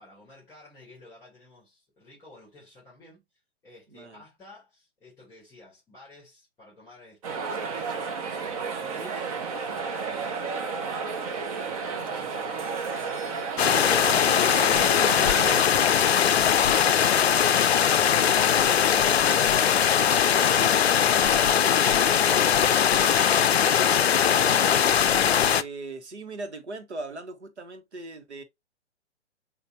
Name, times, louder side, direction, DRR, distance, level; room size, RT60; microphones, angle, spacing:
voice 1, 0.0-3.2 3.6-15.0, left 2 dB, 10° left, 3.6 m, -52 dB
voice 2, 3.9-4.2 24.3-25.0 25.5-28.4, right 3 dB, 70° right, 1.2 m, -39 dB
sound 1, 7.2-15.6, right 5 dB, 30° right, 0.8 m, -32 dB
sound 2, 13.6-25.6, left 8 dB, 65° left, 0.5 m, -21 dB
6.6 x 2.6 x 3.0 m
figure-of-eight pair, 120°, 35 cm